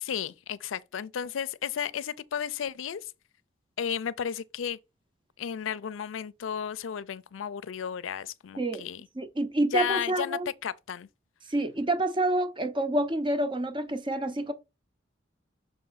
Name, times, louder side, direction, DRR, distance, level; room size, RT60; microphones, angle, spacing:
voice 1, 0.0-3.1 3.8-4.8 5.4-9.1 9.7-11.1, left 8 dB, 85° left, 0.4 m, -33 dB
voice 2, 9.2-10.5 11.5-14.5, right 1 dB, 25° right, 0.7 m, -28 dB
6.1 x 4.7 x 4.0 m
head